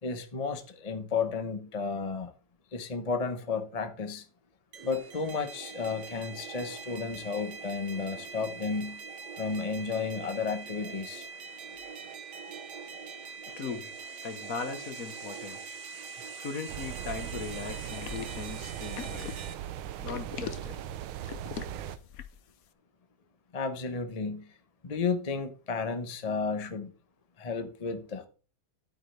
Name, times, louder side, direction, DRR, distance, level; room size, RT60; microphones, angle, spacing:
voice 1, 0.0-2.3 2.7-4.2 4.8-9.0 9.4-11.3 23.5-24.5 24.8-26.9 27.4-28.3, left 5 dB, 30° left, 0.7 m, -33 dB
sound 1, 4.7-19.5, right 5 dB, 60° right, 1.5 m, -43 dB
voice 2, 13.6-13.9 14.2-15.6 16.4-19.3 20.0-20.9, left 5 dB, 50° left, 1.4 m, -38 dB
sound 2, 16.7-22.0, right 11 dB, 80° right, 1.5 m, -39 dB
sound 3, 17.8-22.5, left 9 dB, 65° left, 0.9 m, -42 dB
11.5 x 8.5 x 3.3 m
omnidirectional pair, 2.3 m